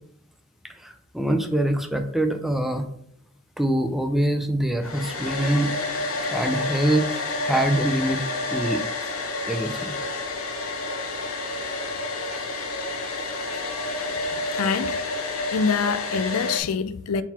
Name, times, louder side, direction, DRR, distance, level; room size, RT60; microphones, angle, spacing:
voice 1, 0.6-2.9 3.6-8.2 8.5-8.8 9.5-9.9 12.3-12.4, right 1 dB, ahead, 0.4 m, -25 dB
Domestic sounds home sounds, 4.8-16.6, left 2 dB, 65° left, 1.0 m, -29 dB
voice 2, 14.3-15.1 15.5-17.2, left 5 dB, 90° left, 0.4 m, -25 dB
4.5 x 3.9 x 5.5 m
head